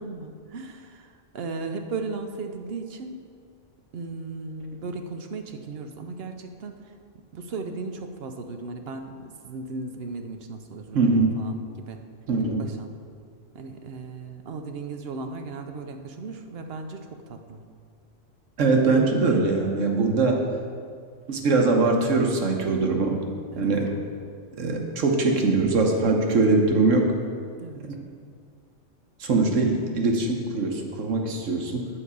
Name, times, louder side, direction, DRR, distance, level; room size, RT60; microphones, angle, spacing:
voice 1, 0.0-3.2 3.9-6.9 7.3-12.0 12.6-12.9 13.5-17.6 23.5-23.7 27.6-27.8, right 3 dB, 60° right, 6 dB, 0.8 m, -36 dB
voice 2, 10.9-11.4 12.3-12.6 18.6-20.4 21.3-23.2 23.6-23.9 24.6-27.1 29.2-31.9, right 3 dB, 80° right, 2 dB, 1.4 m, -22 dB
8.5 x 4.9 x 6.8 m, 2.1 s
omnidirectional pair, 1.3 m